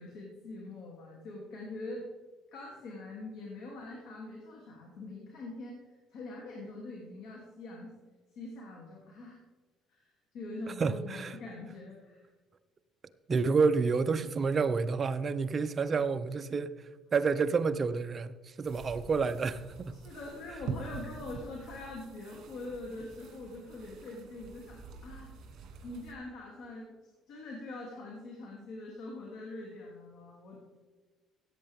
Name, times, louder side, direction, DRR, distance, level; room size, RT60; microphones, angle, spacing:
voice 1, 0.0-2.1 2.5-5.8 6.1-7.9 8.3-9.4 9.9-12.2 19.9-25.3 25.8-26.9 27.3-30.6, left 2 dB, 70° left, 2.7 m, -43 dB
voice 2, 10.7-11.4 13.3-19.9, right 5 dB, 30° right, 0.6 m, -29 dB
sound 1, 18.6-26.1, right 5 dB, 60° right, 2.2 m, -46 dB
16.5 x 8.5 x 3.5 m
cardioid pair, 145°, 0 cm